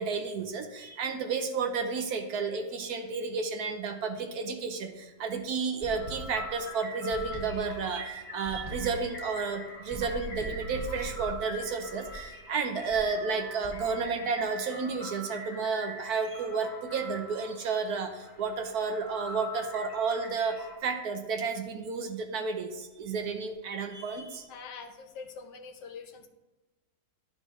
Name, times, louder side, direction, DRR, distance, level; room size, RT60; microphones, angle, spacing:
voice 1, 0.0-24.5, right 5 dB, 65° right, 6 dB, 1.1 m, -32 dB
sound 1, 5.8-20.8, equal, 50° left, 1.7 m, -43 dB
sound 2, 5.8-6.7 7.1-8.1 8.4-9.2 9.9-12.4 12.9-13.2 13.6-14.2, right 3 dB, 50° right, 0.4 m, -42 dB
voice 2, 24.5-26.3, left 5 dB, 75° left, 5 dB, 1.4 m, -44 dB
11.5 x 4.1 x 3.6 m, 1.2 s
omnidirectional pair, 1.9 m